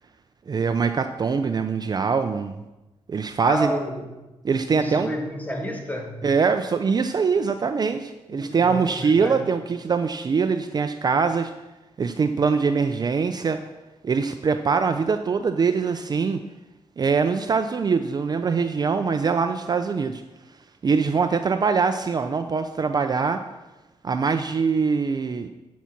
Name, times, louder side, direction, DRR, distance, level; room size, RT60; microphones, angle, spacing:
voice 1, 0.5-2.6 3.1-3.7 4.4-5.1 6.2-11.5 12.0-13.6 14.0-16.4 17.0-20.2 20.8-23.4 24.0-25.5, right 5 dB, 35° right, 8 dB, 0.5 m, -23 dB
voice 2, 3.4-4.1 4.7-6.3 8.3-9.5, equal, 15° left, 2 dB, 1.7 m, -31 dB
8.2 x 7.4 x 5.9 m, 1.0 s
cardioid pair, 115°, 11 cm